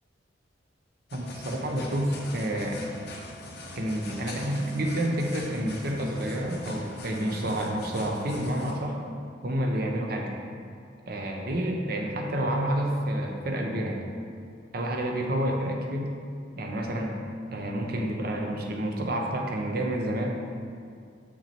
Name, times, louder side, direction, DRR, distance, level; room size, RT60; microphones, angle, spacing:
sound 1, 1.1-8.7, left 1 dB, 55° left, 1.0 m, -42 dB
voice 1, 1.1-2.8 3.8-9.0 9.4-10.3 11.1-14.1 14.7-16.1 16.6-17.2 17.5-20.3, right 1 dB, 50° right, 1 dB, 0.9 m, -29 dB
6.7 x 6.1 x 4.4 m, 2.3 s
head